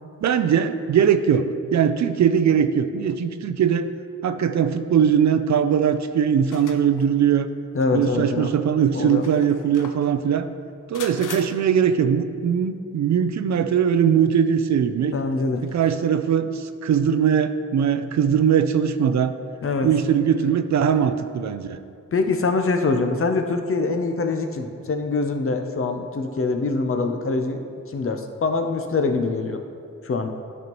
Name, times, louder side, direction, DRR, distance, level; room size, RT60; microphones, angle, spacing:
voice 1, 0.2-3.9 4.2-7.5 7.9-10.5 10.9-15.1 15.6-19.4 19.8-21.8, right 8 dB, 65° right, 10 dB, 0.4 m, -20 dB
sound 1, 6.4-7.1 7.8-7.9 8.9-10.1 10.9-11.4, left 6 dB, 85° left, 0.6 m, -39 dB
voice 2, 7.7-8.5 8.9-9.2 15.1-15.6 19.6-19.9 22.1-27.6 27.9-29.6 30.0-30.3, left 3 dB, 45° left, 5 dB, 0.6 m, -24 dB
12.0 x 5.4 x 3.0 m, 2.4 s
wide cardioid pair, 140°, 30 cm